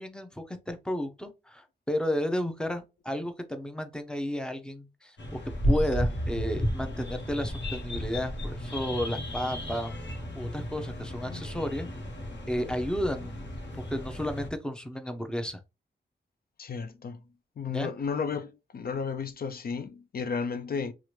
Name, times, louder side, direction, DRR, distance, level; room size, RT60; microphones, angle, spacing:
voice 1, 0.0-9.9 10.3-11.9 12.5-13.4 13.7-15.6 17.7-17.9, equal, 5° left, 0.6 m, -32 dB
sound 1, 5.2-14.5, equal, 75° left, 1.1 m, -33 dB
voice 2, 16.6-17.2 17.6-20.9, left 5 dB, 55° left, 0.4 m, -33 dB
2.9 x 2.5 x 3.0 m
cardioid pair, 80°, 19 cm